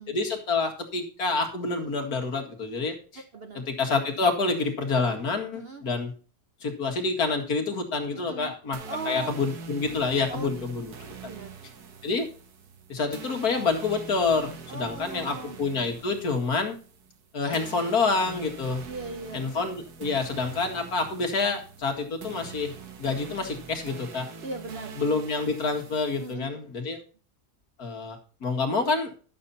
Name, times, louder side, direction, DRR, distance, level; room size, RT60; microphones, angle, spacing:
voice 1, 0.1-3.2 3.5-6.1 6.6-8.8 9.1-10.9 12.0-12.3 12.9-16.8 17.3-18.8 19.3-22.7 23.0-24.3 25.0-27.0 27.8-29.1, left 4 dB, 65° left, 3 dB, 2.4 m, -27 dB
voice 2, 3.3-3.7 5.5-5.9 8.1-8.5 8.9-9.4 10.3-10.6 11.2-11.6 14.7-15.6 18.9-19.5 24.4-24.9 26.2-26.5, right 3 dB, 45° right, 7 dB, 0.9 m, -38 dB
sound 1, 8.7-26.3, right 5 dB, 70° right, 1.8 m, -44 dB
11.5 x 7.1 x 4.1 m, 0.37 s
omnidirectional pair, 1.7 m